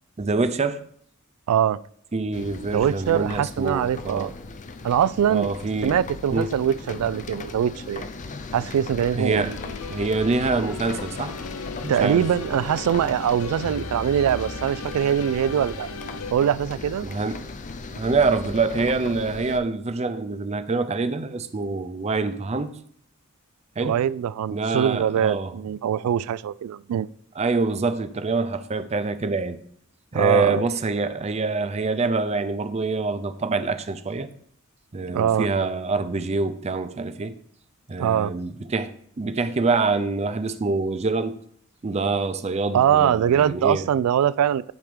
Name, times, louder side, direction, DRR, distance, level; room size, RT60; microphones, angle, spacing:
voice 1, 0.2-0.8 2.1-4.3 5.3-6.0 6.3-6.5 9.1-9.5 9.9-11.3 11.8-12.2 17.0-17.4 17.9-22.7 23.8-24.0 24.5-25.5 27.4-29.6 30.1-34.3 34.9-37.4 37.9-38.9 39.2-41.4 41.8-43.9, right 3 dB, 30° right, 0.5 m, -25 dB
voice 2, 1.5-1.8 2.7-4.3 4.8-5.5 5.8-8.1 8.5-9.6 11.9-15.9 16.3-17.1 23.8-27.1 30.1-30.6 35.1-35.5 38.0-38.3 42.7-44.6, right 9 dB, 90° right, 0.3 m, -22 dB
sound 1, 2.3-19.6, left 3 dB, 35° left, 0.5 m, -37 dB
sound 2, 9.3-16.3, left 4 dB, 75° left, 0.6 m, -37 dB
10.5 x 3.6 x 5.0 m
head